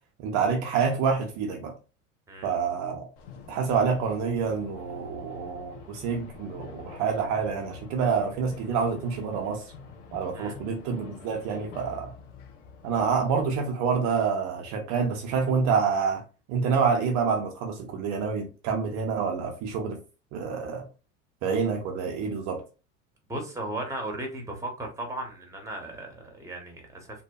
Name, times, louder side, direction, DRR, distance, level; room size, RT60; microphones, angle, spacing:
voice 1, 0.2-1.7 2.4-3.1 3.5-9.7 10.1-12.1 12.8-16.2 16.5-20.0 20.3-20.8 21.4-22.6, right 5 dB, 45° right, 0.5 m, -27 dB
sound 1, 3.2-13.6, left 5 dB, 55° left, 0.8 m, -46 dB
voice 2, 23.3-27.2, right 1 dB, 10° right, 0.8 m, -36 dB
2.7 x 2.2 x 2.3 m
hypercardioid pair, 75°, 38 cm